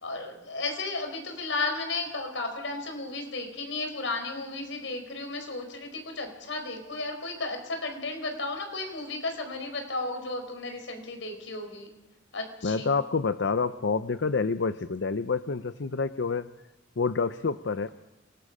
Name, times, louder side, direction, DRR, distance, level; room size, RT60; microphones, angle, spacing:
voice 1, 0.0-11.9 12.3-12.9, left 3 dB, 85° left, 5 dB, 4.9 m, -34 dB
voice 2, 12.6-16.5 17.0-17.9, left 4 dB, 70° left, 12 dB, 0.6 m, -28 dB
27.5 x 19.5 x 5.0 m, 1.0 s
head